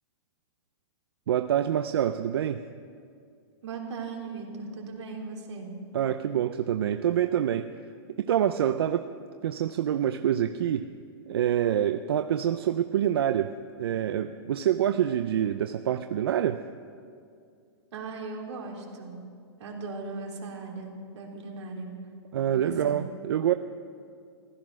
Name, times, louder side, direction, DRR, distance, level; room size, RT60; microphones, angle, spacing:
voice 1, 1.3-2.6 5.9-7.7 8.2-9.1 9.4-10.9 11.3-16.6 22.3-23.5, right 10 dB, 60° right, 10 dB, 0.5 m, -26 dB
voice 2, 3.6-5.7 17.9-19.2 19.6-21.9 22.5-23.0, right 4 dB, 85° right, 0 dB, 3.5 m, -38 dB
15.0 x 13.5 x 6.2 m, 2.3 s
hypercardioid pair, 180°, 15 cm